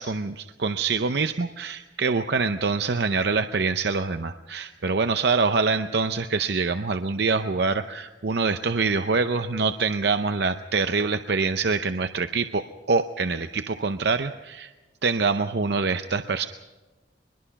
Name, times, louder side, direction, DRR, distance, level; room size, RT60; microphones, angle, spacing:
voice 1, 0.0-12.6 12.9-14.7 15.0-16.4, right 4 dB, 60° right, 9 dB, 0.7 m, -25 dB
23.0 x 21.5 x 5.9 m, 1.2 s
head